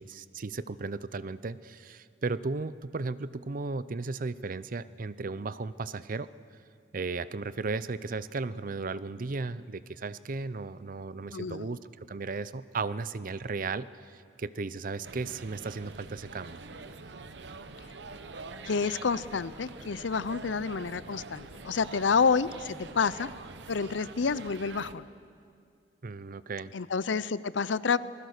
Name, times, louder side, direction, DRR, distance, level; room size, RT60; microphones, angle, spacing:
voice 1, 0.0-6.3 6.9-11.8 12.1-16.6 26.0-26.7, right 3 dB, 50° right, 16 dB, 0.6 m, -35 dB
voice 2, 11.3-11.8 18.6-23.3 23.7-25.1 26.7-28.0, left 5 dB, 80° left, 17 dB, 0.6 m, -29 dB
sound 1, 15.0-24.9, right 3 dB, 65° right, 1.0 m, -45 dB
27.0 x 20.0 x 6.6 m, 2.3 s
head